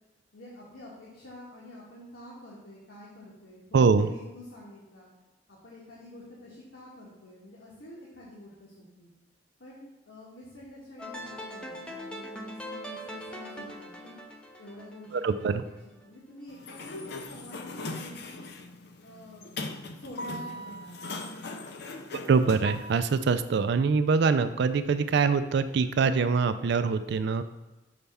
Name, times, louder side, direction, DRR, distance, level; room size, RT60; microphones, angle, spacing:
voice 1, 0.3-5.1 5.5-9.1 9.6-14.2 14.6-15.7 16.0-18.5 19.0-19.5 19.9-21.0, left 1 dB, 80° left, -6 dB, 1.4 m, -48 dB
voice 2, 3.7-4.1 15.1-15.6 22.2-27.4, right 5 dB, 65° right, 11 dB, 0.4 m, -24 dB
sound 1, 11.0-16.1, equal, 5° left, 0.5 m, -42 dB
Sliding door, 16.5-23.0, left 2 dB, 60° left, 0.5 m, -39 dB
5.8 x 3.4 x 5.4 m, 1.0 s
head